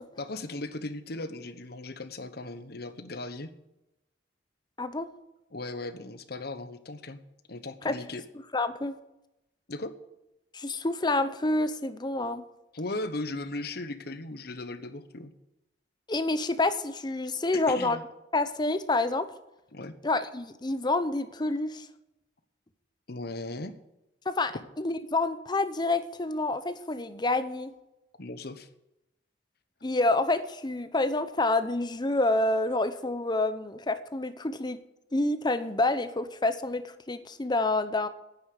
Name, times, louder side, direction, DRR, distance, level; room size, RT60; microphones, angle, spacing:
voice 1, 0.2-3.5 5.5-7.2 7.5-8.2 9.7-9.9 12.7-15.3 17.7-18.0 19.7-19.9 23.1-23.7 28.2-28.7, left 2 dB, 60° left, 10 dB, 1.1 m, -37 dB
voice 2, 4.8-5.1 7.8-8.0 8.5-9.0 10.5-12.4 16.1-18.0 18.3-19.3 20.0-21.9 24.3-27.7 29.8-34.8 35.1-38.1, left 2 dB, 25° left, 11 dB, 0.8 m, -28 dB
9.4 x 8.4 x 9.5 m, 0.91 s
head